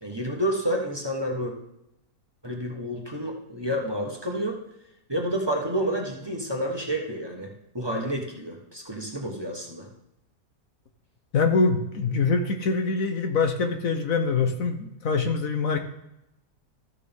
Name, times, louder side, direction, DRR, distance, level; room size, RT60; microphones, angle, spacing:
voice 1, 0.0-1.5 2.4-4.6 5.1-9.9, equal, 15° right, 0 dB, 1.3 m, -29 dB
voice 2, 11.3-15.8, left 4 dB, 65° left, 5 dB, 1.3 m, -24 dB
13.5 x 6.6 x 3.6 m, 0.84 s
omnidirectional pair, 1.6 m